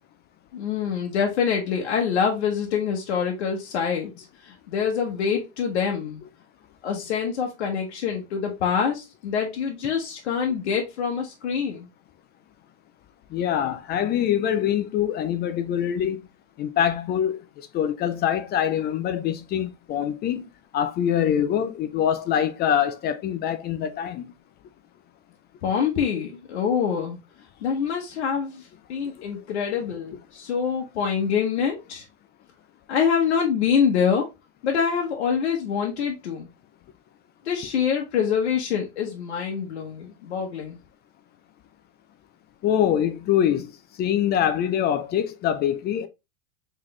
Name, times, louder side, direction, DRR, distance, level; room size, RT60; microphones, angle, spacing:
voice 1, 0.5-6.2 6.8-11.9 25.6-27.2 27.6-32.1 32.9-34.3 34.6-36.5 37.4-40.8, left 7 dB, 85° left, 0.9 m, -25 dB
voice 2, 13.3-16.2 16.6-20.5 20.7-24.3 42.6-43.7 44.0-46.1, left 9 dB, 30° left, 0.4 m, -24 dB
3.7 x 3.2 x 3.1 m
supercardioid pair, 110°, 33 cm